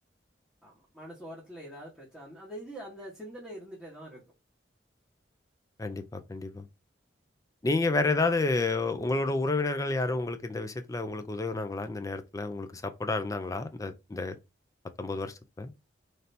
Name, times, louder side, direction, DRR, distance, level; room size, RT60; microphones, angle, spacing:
voice 1, 0.6-4.2, equal, ahead, 1.1 m, -44 dB
voice 2, 5.8-6.6 7.6-14.4 15.0-15.7, left 3 dB, 20° left, 0.4 m, -30 dB
3.3 x 2.7 x 4.0 m
head